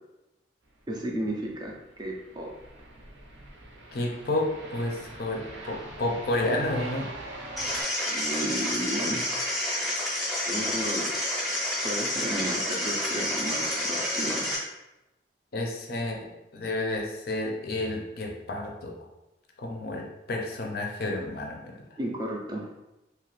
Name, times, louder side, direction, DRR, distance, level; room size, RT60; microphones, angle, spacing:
voice 1, 0.9-2.5 8.1-9.3 10.5-11.2 11.8-14.5 22.0-22.7, right 1 dB, 20° right, -1 dB, 0.3 m, -33 dB
sound 1, 1.2-7.8, right 2 dB, 70° right, 0.6 m, -43 dB
voice 2, 3.9-7.1 15.5-16.2 16.5-18.9 19.6-21.6, left 2 dB, 50° left, 1 dB, 0.5 m, -30 dB
sound 2, 7.6-14.6, left 1 dB, ahead, 0.7 m, -29 dB
2.8 x 2.4 x 3.1 m, 0.96 s
head